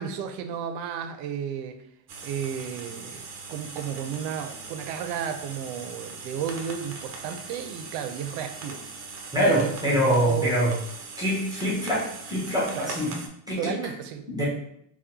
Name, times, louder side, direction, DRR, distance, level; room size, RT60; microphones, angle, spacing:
voice 1, 0.0-1.8 2.2-8.8 9.4-10.6 12.8-13.0 13.6-14.3, right 8 dB, 80° right, 7 dB, 0.6 m, -33 dB
sound 1, 2.1-13.3, right 4 dB, 35° right, 0.6 m, -40 dB
voice 2, 9.3-10.8 11.2-13.2 13.5-13.7 14.3-14.5, equal, 10° right, -6 dB, 0.8 m, -24 dB
3.5 x 2.2 x 2.8 m, 0.73 s
cardioid pair, 130°, 43 cm